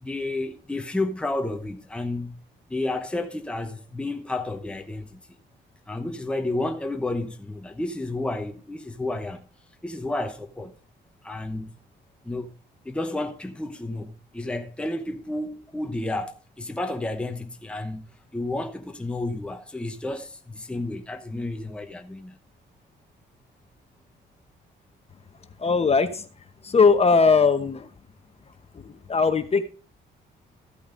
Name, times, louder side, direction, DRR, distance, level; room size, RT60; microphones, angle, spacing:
voice 1, 0.0-2.4 2.7-5.2 5.9-9.5 9.8-10.8 11.2-11.7 12.2-12.5 12.8-18.1 18.3-22.4, left 2 dB, 5° left, 0.9 m, -31 dB
voice 2, 25.6-26.3 26.6-27.9 28.7-29.6, left 4 dB, 30° left, 0.9 m, -20 dB
14.5 x 8.5 x 2.6 m
cardioid pair, 90°, 20 cm